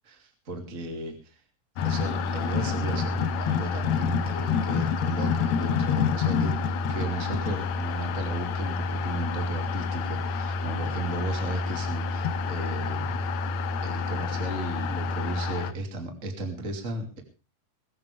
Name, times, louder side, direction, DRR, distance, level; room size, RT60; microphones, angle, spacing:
voice 1, 0.1-1.4 1.8-6.6 6.9-13.3 13.8-17.2, right 2 dB, 20° right, 3 dB, 2.3 m, -35 dB
sound 1, 1.8-15.7, left 5 dB, 75° left, 1.6 m, -28 dB
22.5 x 14.0 x 3.4 m, 0.34 s
omnidirectional pair, 4.7 m